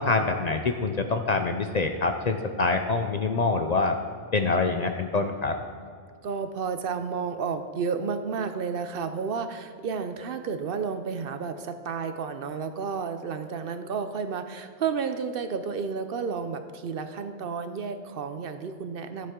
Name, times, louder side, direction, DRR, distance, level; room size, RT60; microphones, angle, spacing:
voice 1, 0.0-4.0 4.3-5.6, left 3 dB, 50° left, 5 dB, 0.5 m, -25 dB
voice 2, 6.2-19.3, right 5 dB, 60° right, 9 dB, 0.7 m, -31 dB
12.5 x 7.6 x 3.7 m, 2.2 s
omnidirectional pair, 1.1 m